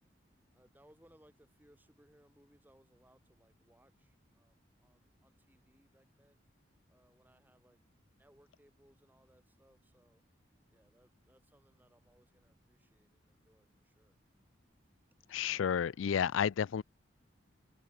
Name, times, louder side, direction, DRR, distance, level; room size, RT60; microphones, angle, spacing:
voice 1, 0.5-6.4 6.9-7.8 8.1-10.2 10.7-14.2 15.3-15.4, equal, 10° right, 3.8 m, -67 dB
voice 2, 15.3-16.8, left 8 dB, 90° left, 0.4 m, -31 dB
head